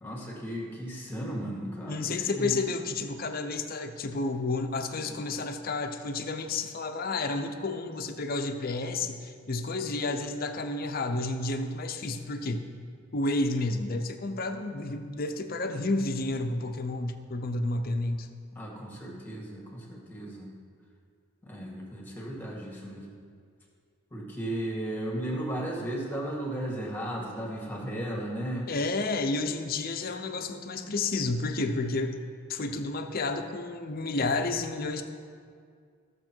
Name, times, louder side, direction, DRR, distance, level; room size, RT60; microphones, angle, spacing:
voice 1, 0.0-2.6 18.5-20.5 21.4-23.2 24.1-28.7, right 1 dB, 10° left, -2 dB, 1.9 m, -35 dB
voice 2, 1.9-12.7 13.1-18.3 28.7-32.2 32.5-35.0, left 2 dB, 45° left, 6 dB, 0.7 m, -31 dB
15.5 x 6.8 x 4.5 m, 2.1 s
head